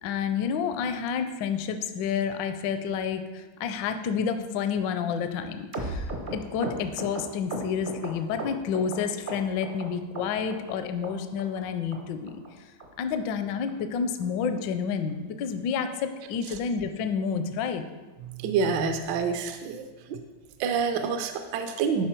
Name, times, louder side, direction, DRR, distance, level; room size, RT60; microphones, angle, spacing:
voice 1, 0.0-12.7 13.0-17.8, left 6 dB, 75° left, 9 dB, 1.1 m, -29 dB
sound 1, 5.7-9.0 9.3-9.9 10.2-10.7 11.0-11.1 11.4-11.6 11.9-12.0 12.3-12.5 12.8-12.9 13.2-13.4 13.7-13.8 14.0-14.2 14.6-14.7 14.9-15.1 15.5-15.6, right 2 dB, 50° right, 0.6 m, -35 dB
voice 2, 18.3-20.2 20.6-22.1, right 5 dB, 70° right, 7 dB, 1.1 m, -27 dB
11.5 x 4.4 x 4.4 m, 1.2 s
omnidirectional pair, 2.4 m